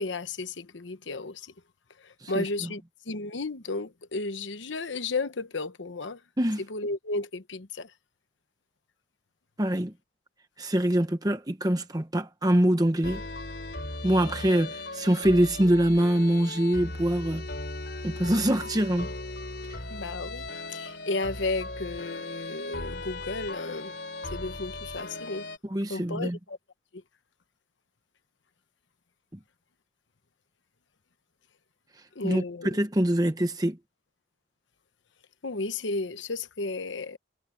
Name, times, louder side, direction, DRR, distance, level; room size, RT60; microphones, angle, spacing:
voice 1, 0.0-1.5 2.0-6.2 6.7-7.9 19.9-23.9 24.2-25.5 25.9-26.6 26.9-27.0 32.1-32.7 35.4-37.2, left 3 dB, 85° left, 1.0 m, -33 dB
voice 2, 2.2-2.7 6.4-6.6 9.6-9.9 10.6-13.2 14.0-17.4 18.0-19.1 19.7-19.8 25.6-26.4 32.2-33.8, right 1 dB, 20° right, 1.0 m, -24 dB
sound 1, 13.0-25.6, left 2 dB, 60° left, 4.2 m, -38 dB
head